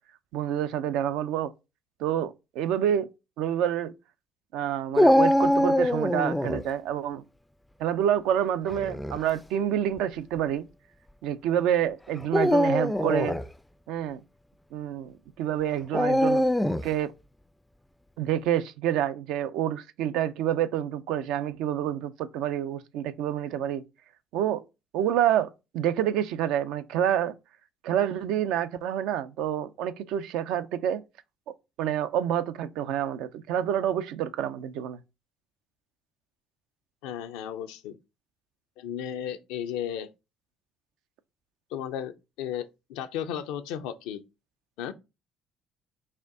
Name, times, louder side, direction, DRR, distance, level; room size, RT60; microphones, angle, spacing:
voice 1, 0.3-1.5 2.0-3.1 3.4-3.9 4.5-7.2 7.8-10.7 11.2-13.4 13.9-14.2 14.7-16.5 16.8-17.1 18.2-23.8 24.3-24.6 24.9-25.5 25.7-27.3 27.8-31.0 31.8-35.0, right 10 dB, 75° right, 0.4 m, -28 dB
Dog, 5.0-6.6 8.7-9.2 10.0-10.1 12.2-13.5 15.9-16.9, left 1 dB, 5° left, 0.3 m, -23 dB
voice 2, 37.0-38.0 38.8-40.1 41.7-44.2 44.8-44.9, left 9 dB, 80° left, 0.5 m, -34 dB
4.3 x 2.6 x 3.7 m
supercardioid pair, 65°, 0 cm